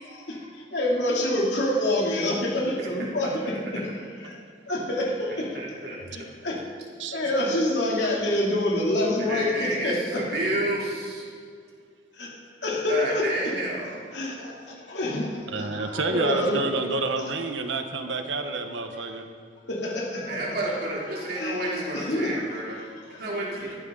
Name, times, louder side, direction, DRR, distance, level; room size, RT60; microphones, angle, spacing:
voice 1, 0.0-3.9 4.1-4.4 4.7-5.6 6.1-6.6 7.1-10.2 12.1-13.5 14.1-16.6 17.7-17.8 18.1-18.2 19.7-20.8 21.1-23.2 23.5-23.8, left 1 dB, 70° left, -3 dB, 2.9 m, -27 dB
voice 2, 5.5-6.3 9.3-11.2 12.9-14.1 16.2-16.4 20.3-22.7 23.2-23.8, right 1 dB, 55° right, -4 dB, 3.3 m, -30 dB
voice 3, 15.5-19.3, right 3 dB, 90° right, 6 dB, 1.1 m, -29 dB
22.5 x 11.5 x 3.9 m, 2.1 s
head